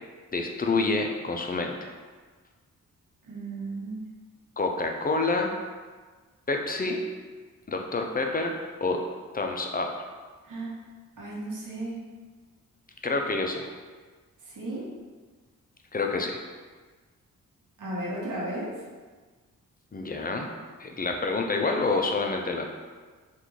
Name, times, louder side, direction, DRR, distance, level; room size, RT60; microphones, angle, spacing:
voice 1, 0.3-1.9 4.6-5.5 6.5-7.1 7.7-8.6 8.8-10.1 13.0-13.7 15.9-16.4 19.9-22.6, left 3 dB, 25° left, 3 dB, 0.4 m, -28 dB
voice 2, 3.2-4.0 10.4-10.7 11.2-12.0 14.4-14.9 17.8-18.8, right 1 dB, 60° right, -6 dB, 1.0 m, -34 dB
3.0 x 2.5 x 3.7 m, 1.4 s
cardioid pair, 55°, 35 cm